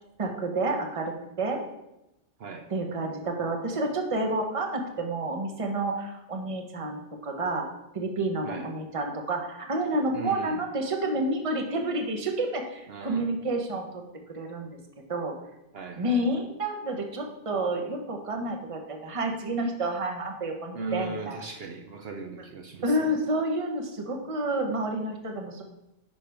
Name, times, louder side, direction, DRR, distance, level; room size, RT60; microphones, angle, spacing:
voice 1, 0.2-1.6 2.7-7.0 7.2-7.7 7.9-14.0 14.3-14.7 15.1-15.3 16.0-21.4 22.8-25.6, right 1 dB, 30° right, 3 dB, 0.9 m, -29 dB
voice 2, 10.1-10.6 12.9-13.3 15.7-16.2 20.7-23.0, right 3 dB, 65° right, 3 dB, 0.9 m, -37 dB
10.5 x 5.1 x 3.4 m, 0.92 s
omnidirectional pair, 1.2 m